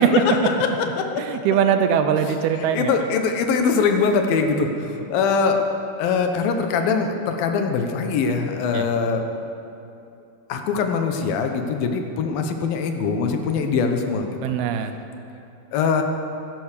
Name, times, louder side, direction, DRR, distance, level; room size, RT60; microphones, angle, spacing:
voice 1, 0.1-0.7 1.0-1.1 2.7-5.6 6.0-9.2 10.5-14.4 15.7-16.0, left 5 dB, 70° left, 5 dB, 2.7 m, -22 dB
voice 2, 1.2-2.9 8.7-8.9 14.4-14.9, right 8 dB, 80° right, 8 dB, 2.6 m, -22 dB
16.0 x 11.0 x 6.7 m, 2.6 s
omnidirectional pair, 4.6 m